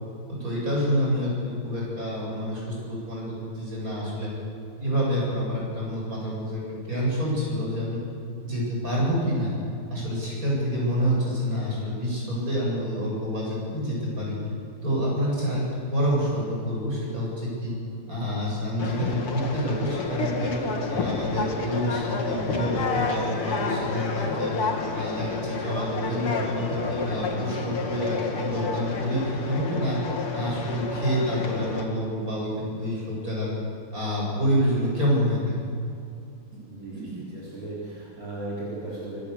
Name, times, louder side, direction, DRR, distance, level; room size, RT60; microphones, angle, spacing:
voice 1, 0.3-4.3 4.8-6.6 6.9-8.0 8.4-9.5 9.9-14.4 14.8-17.7 18.1-20.5 20.9-24.5 24.9-30.0 30.3-33.5 33.9-35.5 36.9-37.2, equal, 40° right, -4 dB, 8.6 m, -27 dB
Conversation, 18.8-31.8, left 4 dB, 80° left, 3.1 m, -30 dB
voice 2, 36.7-39.2, right 2 dB, 70° right, -6 dB, 5.0 m, -37 dB
26.0 x 18.5 x 8.4 m, 2.4 s
omnidirectional pair, 2.4 m